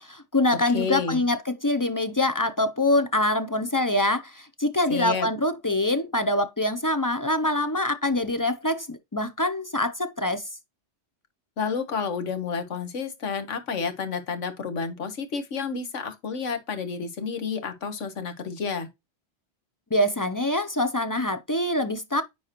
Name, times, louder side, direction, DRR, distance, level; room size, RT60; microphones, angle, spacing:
voice 1, 0.0-10.5 19.9-22.2, left 1 dB, 30° left, 0.3 m, -25 dB
voice 2, 0.7-1.2 4.9-5.3 11.6-18.9, left 5 dB, 85° left, 1.6 m, -30 dB
9.9 x 4.0 x 2.9 m
omnidirectional pair, 1.2 m